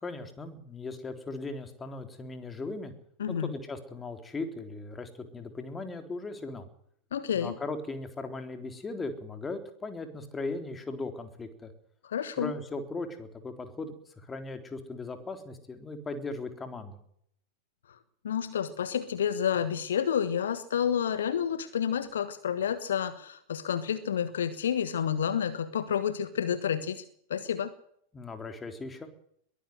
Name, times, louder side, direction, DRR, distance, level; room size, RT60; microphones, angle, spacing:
voice 1, 0.0-2.9 3.3-6.7 7.3-11.7 12.4-17.0 28.1-29.1, left 3 dB, 15° left, 7 dB, 3.7 m, -38 dB
voice 2, 3.2-3.5 7.1-7.5 12.0-12.5 18.2-27.0 27.3-27.7, left 8 dB, 65° left, 13 dB, 1.5 m, -29 dB
22.5 x 15.0 x 7.7 m, 0.67 s
figure-of-eight pair, 90°, 0 cm